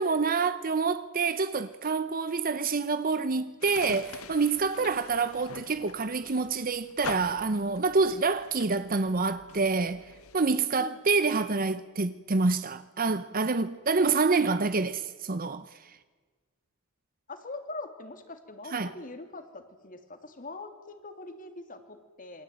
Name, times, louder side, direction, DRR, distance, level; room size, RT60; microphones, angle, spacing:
voice 1, 0.0-16.0 18.7-18.9, right 4 dB, 40° right, 0.8 m, -27 dB
sound 1, 3.6-10.4, left 5 dB, 80° left, 1.5 m, -45 dB
voice 2, 17.3-22.4, left 2 dB, 40° left, 2.9 m, -42 dB
27.5 x 22.5 x 9.2 m
head